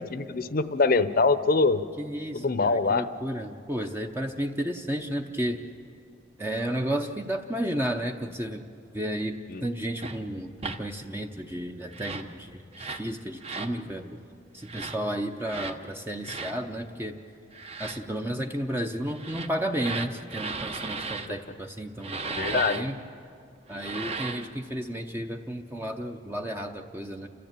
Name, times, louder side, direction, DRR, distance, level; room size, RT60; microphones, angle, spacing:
voice 1, 0.0-1.8 2.3-3.0 9.5-9.6 22.2-22.8, left 3 dB, 55° left, 13 dB, 0.8 m, -24 dB
voice 2, 2.0-5.6 6.4-8.7 8.9-14.3 14.5-17.2 17.8-23.0 23.7-27.3, right 1 dB, 15° right, 3 dB, 0.7 m, -32 dB
sound 1, 10.0-10.2 10.6-10.8 11.9-12.3 12.7-13.1 13.4-13.7 14.6-15.0 15.5-15.8 16.2-16.5 17.5-18.0 19.1-21.3 22.0-22.8 23.7-24.5, right 4 dB, 35° right, 1.0 m, -35 dB
29.0 x 13.5 x 8.9 m, 2.4 s
head